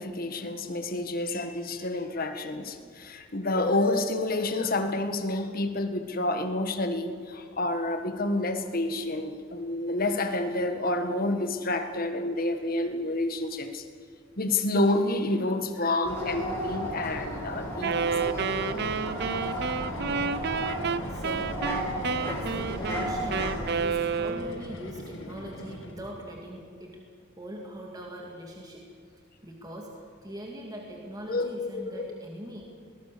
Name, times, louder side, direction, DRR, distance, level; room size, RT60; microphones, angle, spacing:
voice 1, 0.0-13.8 14.4-18.5 31.3-32.1, left 2 dB, 45° left, 7 dB, 1.7 m, -29 dB
sound 1, 16.0-23.7, equal, 15° left, 6.2 m, -34 dB
Wind instrument woodwind instrument, 17.8-24.8, right 5 dB, 55° right, 0.6 m, -30 dB
sound 2, 18.3-26.3, left 1 dB, 70° left, 2.3 m, -42 dB
voice 2, 21.1-23.5 23.8-27.0 27.4-28.9 29.4-32.7, equal, 20° right, -1 dB, 2.3 m, -42 dB
21.0 x 19.5 x 6.9 m, 2.1 s
head